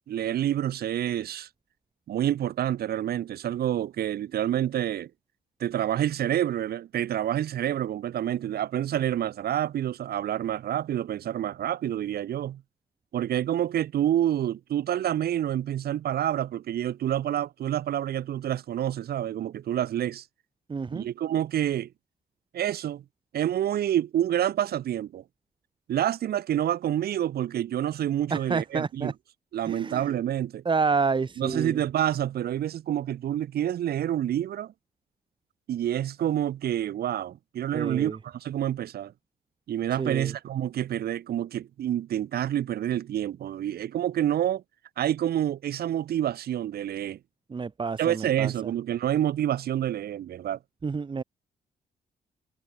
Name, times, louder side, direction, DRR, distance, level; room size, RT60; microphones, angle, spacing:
voice 1, 0.1-1.5 2.1-5.1 5.6-12.6 13.1-20.2 20.9-21.9 22.5-23.0 23.3-25.2 25.9-29.1 29.5-30.6 31.4-34.7 35.7-39.1 39.7-44.6 45.0-47.2 48.0-50.6, right 11 dB, 80° right, 1.6 m, -28 dB
voice 2, 20.7-21.1 28.3-29.1 29.7-30.1 30.7-31.8 37.7-38.2 40.0-40.3 47.5-48.5 50.8-51.2, right 4 dB, 30° right, 2.1 m, -29 dB
cardioid pair, 130°, 16 cm